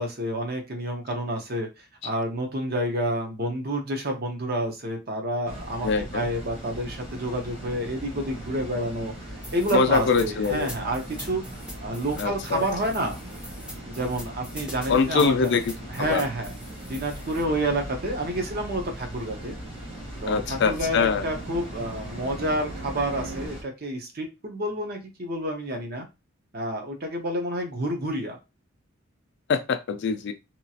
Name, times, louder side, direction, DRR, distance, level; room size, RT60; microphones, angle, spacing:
voice 1, 0.0-1.7 2.0-9.1 9.5-11.4 11.8-13.2 13.8-15.6 15.9-16.5 16.9-19.5 20.2-26.1 26.5-28.4, right 1 dB, 45° right, 3 dB, 0.7 m, -29 dB
Water, 5.5-23.6, right 1 dB, 25° right, 1.1 m, -39 dB
voice 2, 5.8-6.3 9.7-10.7 12.2-12.6 14.9-16.2 20.3-21.2 29.5-30.3, left 5 dB, 50° left, 8 dB, 0.3 m, -24 dB
sound 1, 9.4-17.4, equal, 5° right, 0.5 m, -43 dB
Fixed-wing aircraft airplane, 18.7-23.5, right 3 dB, 70° right, 1.1 m, -43 dB
2.9 x 2.3 x 2.7 m, 0.25 s
head